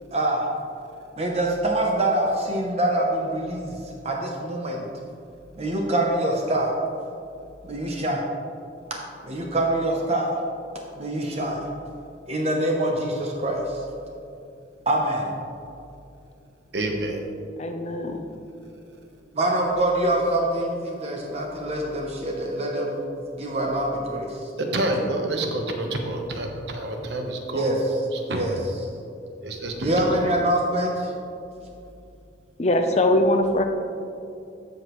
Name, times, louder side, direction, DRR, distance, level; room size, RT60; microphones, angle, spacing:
voice 1, 0.1-0.4 1.2-3.7 4.0-4.9 5.6-6.7 7.6-8.2 9.2-10.3 10.9-11.6 12.3-13.6 14.9-15.3 19.3-23.0 23.4-24.3 27.5-28.0 28.3-28.6 29.8-31.1, right 1 dB, 35° right, -1 dB, 0.7 m, -24 dB
voice 2, 16.7-17.2 24.6-27.7 28.1-28.4 29.4-30.3, right 1 dB, 60° right, 3 dB, 1.0 m, -28 dB
voice 3, 17.6-18.3 32.6-33.6, left 1 dB, 35° left, 5 dB, 0.6 m, -21 dB
13.5 x 5.1 x 3.1 m, 2.6 s
head